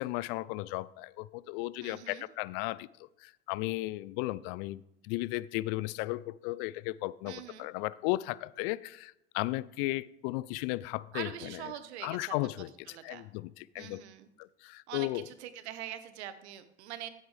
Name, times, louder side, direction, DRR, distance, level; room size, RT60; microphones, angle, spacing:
voice 1, 0.0-2.9 3.2-11.6 12.0-12.7 13.0-14.0 14.4-15.2, left 19 dB, 60° left, 0.5 m, -35 dB
voice 2, 1.8-2.3 7.2-7.7 11.1-12.3 12.9-13.3 13.8-14.3 14.9-17.1, right 11 dB, 75° right, 1.2 m, -43 dB
15.0 x 8.7 x 3.3 m
hypercardioid pair, 80°, 34 cm